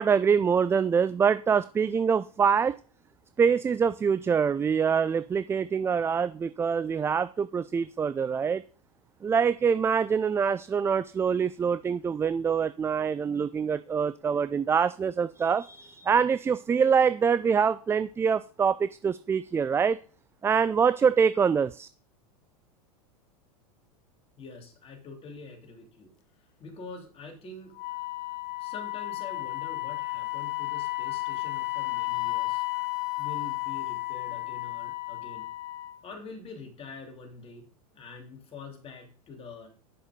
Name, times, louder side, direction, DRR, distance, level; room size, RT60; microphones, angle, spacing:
voice 1, 0.0-2.8 3.4-8.6 9.2-20.0 20.4-21.9, right 6 dB, 15° right, 14 dB, 0.3 m, -25 dB
voice 2, 24.4-26.1 26.6-27.8 28.6-32.7 33.2-35.5 36.0-39.7, left 3 dB, 30° left, 3 dB, 3.1 m, -45 dB
Wind instrument woodwind instrument, 27.8-36.0, left 22 dB, 50° left, 1.3 m, -33 dB
9.7 x 6.1 x 5.0 m, 0.41 s
hypercardioid pair, 110°, 19 cm